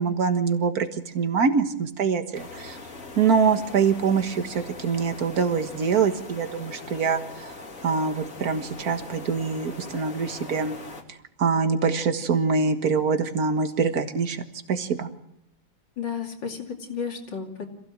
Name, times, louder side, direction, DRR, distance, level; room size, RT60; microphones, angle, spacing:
voice 1, 0.0-2.8 3.2-7.6 7.8-10.8 11.4-14.4 14.7-15.1, right 5 dB, 50° right, 7 dB, 1.9 m, -24 dB
sound 1, 2.3-11.0, left 3 dB, 40° left, 2.4 m, -41 dB
voice 2, 16.0-17.7, left 6 dB, 65° left, 3 dB, 3.3 m, -32 dB
26.5 x 16.0 x 7.5 m, 0.78 s
omnidirectional pair, 2.2 m